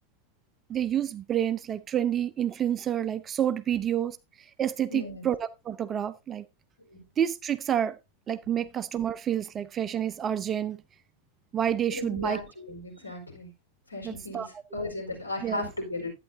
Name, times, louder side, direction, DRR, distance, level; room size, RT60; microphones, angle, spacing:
voice 1, 0.7-6.4 7.2-8.0 8.3-10.8 11.5-12.4 14.0-14.5 15.4-15.7, right 10 dB, 25° right, 0.6 m, -29 dB
voice 2, 4.9-5.2 6.9-7.0 11.9-13.5 13.9-16.1, left 2 dB, 85° left, 4.6 m, -36 dB
11.5 x 9.1 x 2.7 m
figure-of-eight pair, 90°, 0 cm